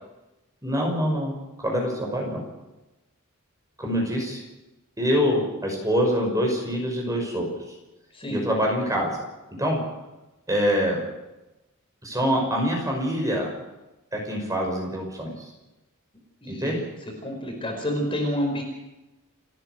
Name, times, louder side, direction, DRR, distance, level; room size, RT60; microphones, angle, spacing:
voice 1, 0.6-1.3 1.6-2.4 3.8-4.4 5.0-7.5 8.3-9.1 9.6-9.8 10.5-11.0 12.0-13.5 14.1-15.3 16.5-16.8, equal, 15° right, 0 dB, 5.7 m, -25 dB
voice 2, 16.4-16.7 17.2-18.6, equal, 25° left, 2 dB, 5.1 m, -28 dB
30.0 x 11.0 x 8.1 m, 1.0 s
head